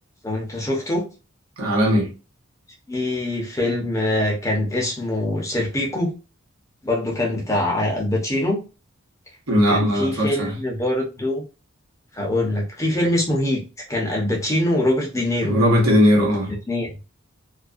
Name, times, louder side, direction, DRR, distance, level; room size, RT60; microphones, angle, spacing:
voice 1, 0.2-1.0 2.9-6.1 6.8-8.6 9.7-11.4 12.1-13.6 13.9-15.6 16.4-16.9, left 1 dB, 15° left, 0.6 m, -23 dB
voice 2, 1.6-2.1 9.5-10.5 15.4-16.5, equal, 85° right, 1.0 m, -18 dB
2.4 x 2.2 x 2.4 m
head